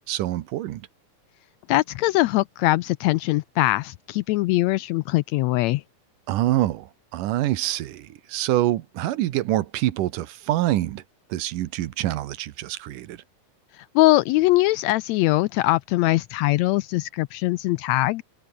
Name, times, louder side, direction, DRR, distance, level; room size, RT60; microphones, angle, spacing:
voice 1, 0.1-0.9 6.3-11.0 11.3-13.2, right 14 dB, 85° right, 2.6 m, -26 dB
voice 2, 1.7-5.8 13.8-18.2, left 18 dB, 85° left, 1.6 m, -22 dB
omnidirectional pair, 3.7 m